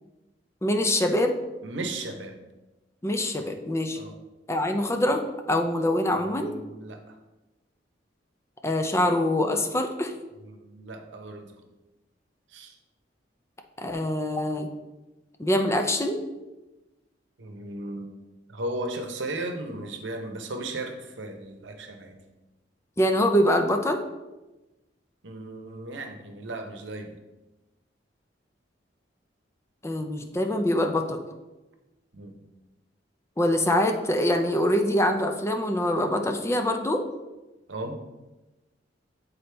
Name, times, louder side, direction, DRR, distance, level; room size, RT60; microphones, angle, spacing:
voice 1, 0.6-1.3 3.0-4.0 4.5-6.5 8.6-10.1 13.8-14.7 15.4-16.2 23.0-24.0 29.8-31.2 33.4-37.1, left 1 dB, 15° left, 5 dB, 0.5 m, -24 dB
voice 2, 1.6-2.4 4.0-4.2 6.1-7.2 10.4-11.5 12.5-12.8 17.4-18.1 18.5-22.2 25.2-27.2 32.1-32.4 37.7-38.0, right 2 dB, 80° right, 5 dB, 0.8 m, -36 dB
8.3 x 4.0 x 3.3 m, 1.1 s
head